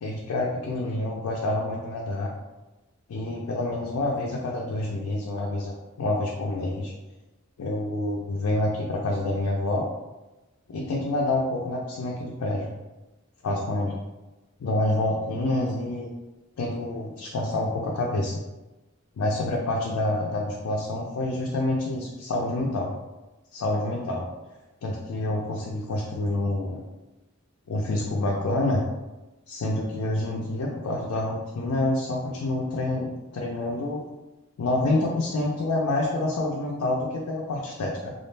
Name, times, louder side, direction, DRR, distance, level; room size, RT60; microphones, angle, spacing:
voice 1, 0.0-2.3 3.1-5.7 6.0-6.9 7.6-9.9 10.7-12.7 13.4-14.0 14.6-16.1 16.6-18.3 19.2-22.9 23.5-24.3 24.8-26.8 27.7-28.8 29.5-34.0 34.6-38.1, left 2 dB, 85° left, -2 dB, 0.4 m, -27 dB
2.3 x 2.0 x 3.1 m, 1.1 s
head